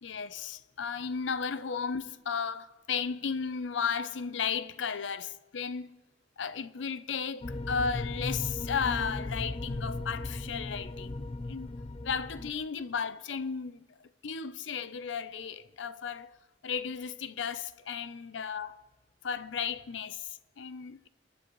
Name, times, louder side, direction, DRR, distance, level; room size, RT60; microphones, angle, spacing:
voice 1, 0.0-6.0 6.4-11.7 12.0-16.4 16.6-18.8 19.2-21.1, left 6 dB, 80° left, 0.6 m, -34 dB
sound 1, 7.4-12.5, left 2 dB, 30° left, 0.5 m, -36 dB
27.5 x 10.5 x 3.1 m
head